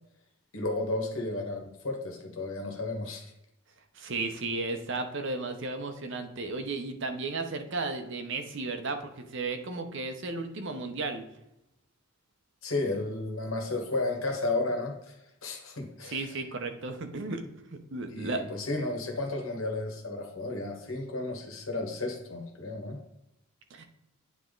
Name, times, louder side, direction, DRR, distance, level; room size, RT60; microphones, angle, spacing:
voice 1, 0.5-3.3 12.6-15.2 15.4-16.3 18.1-23.0, left 2 dB, 75° left, 3 dB, 1.6 m, -33 dB
voice 2, 3.9-11.2 16.1-17.4 17.7-18.4 23.7-23.8, right 3 dB, 60° right, 7 dB, 0.9 m, -34 dB
9.3 x 3.7 x 3.9 m, 0.87 s
head